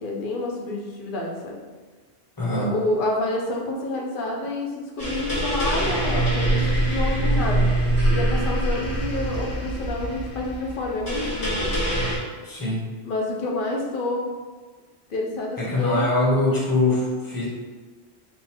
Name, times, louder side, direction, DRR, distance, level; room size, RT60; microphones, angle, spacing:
voice 1, 0.0-1.6 2.6-7.7 8.1-11.8 13.0-14.2 15.1-16.1, left 2 dB, 55° left, -1 dB, 0.8 m, -28 dB
voice 2, 2.4-2.7 12.4-12.9 15.6-17.5, left 2 dB, 20° left, -5 dB, 0.9 m, -23 dB
sound 1, 5.0-12.2, right 1 dB, 80° left, 1.6 m, -24 dB
3.9 x 2.4 x 4.3 m, 1.4 s
omnidirectional pair, 1.1 m